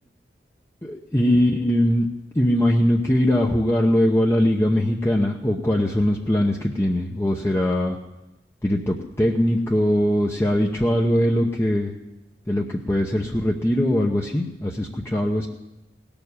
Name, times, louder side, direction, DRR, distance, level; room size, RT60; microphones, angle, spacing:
voice 1, 0.9-2.1 2.3-8.0 8.6-11.9 12.5-15.5, left 1 dB, 15° left, 0 dB, 0.8 m, -21 dB
18.0 x 7.1 x 9.7 m, 0.98 s
head